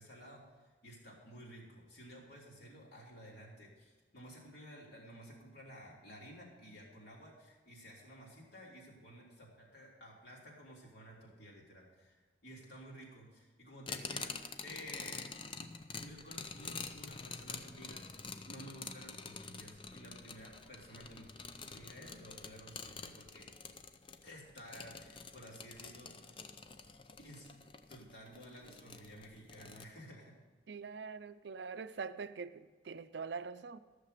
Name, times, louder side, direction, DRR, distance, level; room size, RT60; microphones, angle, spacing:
voice 1, 0.0-14.3 14.6-15.3 16.0-18.0 18.4-21.3 21.7-23.5 24.2-26.1 27.2-27.5 27.9-30.3, equal, 60° left, 3.4 m, -53 dB
sound 1, 13.9-29.8, left 4 dB, 30° left, 0.6 m, -47 dB
voice 2, 30.7-33.8, right 5 dB, 65° right, 0.5 m, -44 dB
14.0 x 6.7 x 6.7 m
head